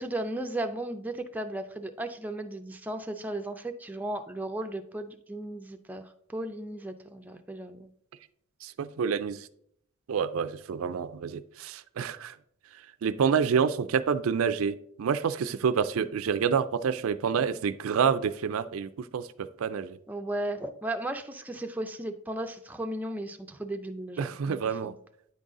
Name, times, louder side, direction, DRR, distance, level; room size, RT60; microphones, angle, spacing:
voice 1, 0.0-7.9 20.1-24.9, right 1 dB, 10° right, 5 dB, 0.4 m, -35 dB
voice 2, 8.6-9.5 10.1-12.4 13.0-19.3 19.6-20.0 24.2-24.9, right 6 dB, 80° right, 13 dB, 0.4 m, -28 dB
9.5 x 4.0 x 3.7 m, 0.70 s
head